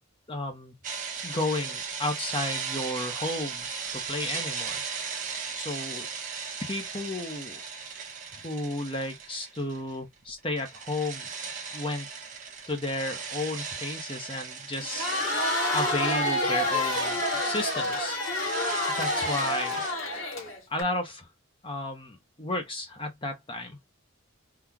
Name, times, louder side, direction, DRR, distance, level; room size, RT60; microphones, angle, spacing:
voice 1, 0.3-0.7 1.2-3.7 3.9-4.8 5.5-6.1 6.6-7.6 8.3-11.3 11.7-12.1 12.7-15.1 15.7-18.2 19.0-19.8 20.7-21.3 21.6-23.8, left 2 dB, 25° left, 0.9 m, -33 dB
sound 1, 0.8-9.9 10.2-19.9, right 5 dB, 40° right, 1.0 m, -37 dB
Crowd, 14.8-20.8, left 2 dB, 70° left, 1.7 m, -28 dB
3.9 x 2.4 x 2.9 m
head